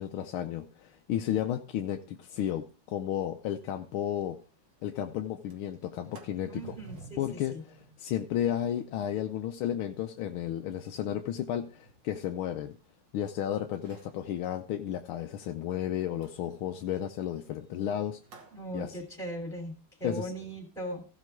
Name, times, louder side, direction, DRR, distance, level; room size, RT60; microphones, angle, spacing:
voice 1, 0.0-4.4 4.8-6.7 7.2-12.8 13.1-18.2 18.7-19.0 20.0-20.3, left 10 dB, 85° left, 5 dB, 1.7 m, -33 dB
Sliding door, 3.8-3.9 4.2-4.3 4.6-4.9 5.3-13.3 13.7-14.2 16.2-18.6, right 3 dB, 60° right, 2.3 m, -56 dB
voice 2, 6.5-7.2 7.5-7.6 18.5-21.0, right 1 dB, ahead, 2 dB, 3.0 m, -38 dB
15.5 x 5.8 x 4.7 m, 0.36 s
omnidirectional pair, 2.3 m